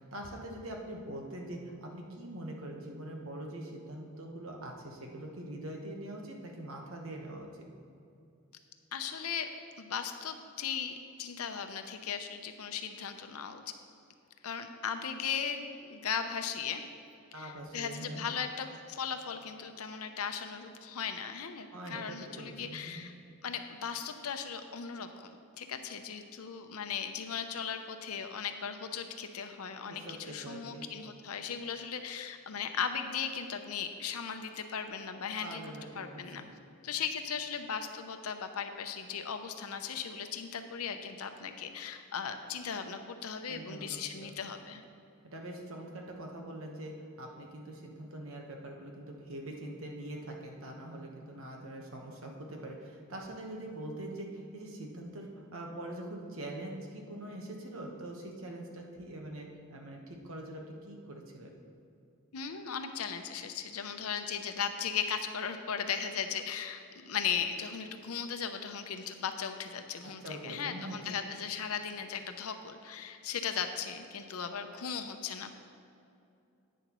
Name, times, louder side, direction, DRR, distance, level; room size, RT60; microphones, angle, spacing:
voice 1, 0.0-7.7 17.3-18.2 21.7-23.1 29.9-30.8 35.4-36.5 43.5-44.3 45.3-46.9 47.2-61.5 70.2-71.1, right 1 dB, 65° right, 1 dB, 1.2 m, -43 dB
voice 2, 8.9-9.5 9.8-13.6 14.4-16.8 17.3-23.1 23.4-35.6 36.0-36.4 36.8-44.8 62.3-75.5, left 7 dB, 85° left, 7 dB, 0.7 m, -37 dB
10.5 x 9.2 x 3.1 m, 2.6 s
head